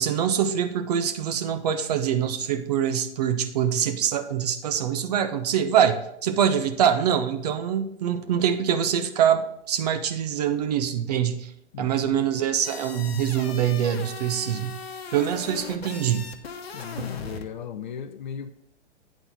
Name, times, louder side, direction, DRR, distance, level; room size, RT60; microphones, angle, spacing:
voice 1, 0.0-11.5 11.8-14.8 15.1-16.3, right 9 dB, 35° right, 0.6 m, -24 dB
voice 2, 11.7-12.2 16.7-18.5, left 8 dB, 45° left, 0.5 m, -36 dB
sound 1, 12.6-17.5, left 5 dB, 60° left, 1.0 m, -39 dB
9.1 x 4.0 x 5.5 m
figure-of-eight pair, 120°, 35 cm